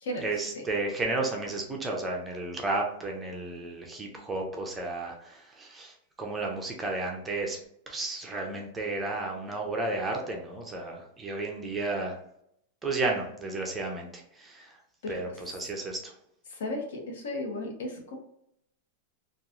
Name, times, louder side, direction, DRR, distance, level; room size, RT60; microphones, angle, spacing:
voice 1, 0.2-5.9 6.2-7.6 7.9-12.2 12.8-14.1 14.4-14.6 15.1-16.1, right 2 dB, 10° right, 1 dB, 0.4 m, -32 dB
voice 2, 15.0-15.4 16.5-18.2, left 1 dB, 75° left, 1 dB, 0.9 m, -35 dB
2.9 x 2.3 x 2.4 m, 0.75 s
supercardioid pair, 170°, 0 cm